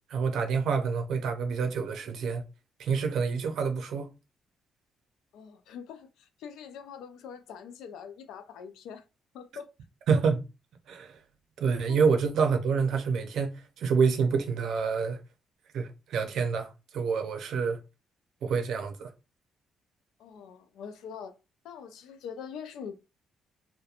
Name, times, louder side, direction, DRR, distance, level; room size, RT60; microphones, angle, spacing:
voice 1, 0.1-2.4 2.8-4.1 10.1-10.5 10.9-11.2 11.6-15.2 15.7-17.8 18.4-19.1, right 5 dB, 75° right, 0.5 m, -27 dB
voice 2, 5.3-9.0 9.3-9.7 11.9-12.0 20.2-21.4 21.6-22.9, left 7 dB, 85° left, 0.4 m, -43 dB
2.8 x 2.1 x 2.4 m
cardioid pair, 90°, 0 cm